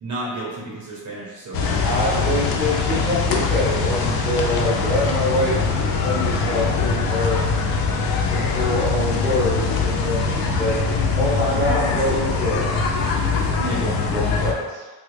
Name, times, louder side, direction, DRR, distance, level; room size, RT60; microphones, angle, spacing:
voice 1, 0.0-1.8 13.3-13.8, right 1 dB, 45° right, -6 dB, 0.9 m, -32 dB
sound 1, 1.5-14.5, left 4 dB, 60° left, 0.5 m, -22 dB
voice 2, 1.8-7.4 8.3-10.8 11.1-12.8 13.7-14.9, left 1 dB, 15° left, -10 dB, 1.4 m, -25 dB
3.5 x 2.0 x 3.2 m, 1.3 s
cardioid pair, 110°, 41 cm